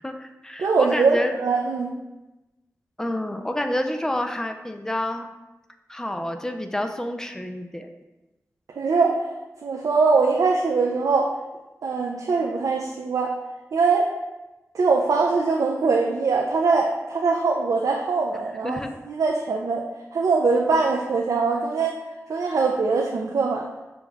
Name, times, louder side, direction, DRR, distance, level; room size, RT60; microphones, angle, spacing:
voice 1, 0.0-1.3 3.0-5.3 5.9-7.9 18.6-18.9, left 1 dB, 10° left, 5 dB, 0.4 m, -28 dB
voice 2, 0.6-1.9 8.8-9.3 9.6-11.3 11.8-13.4 13.7-14.1 14.7-18.8 19.1-19.8 20.1-22.0 22.3-23.7, right 4 dB, 85° right, 0 dB, 0.4 m, -22 dB
6.1 x 2.3 x 3.3 m, 1.0 s
wide cardioid pair, 75°, 6 cm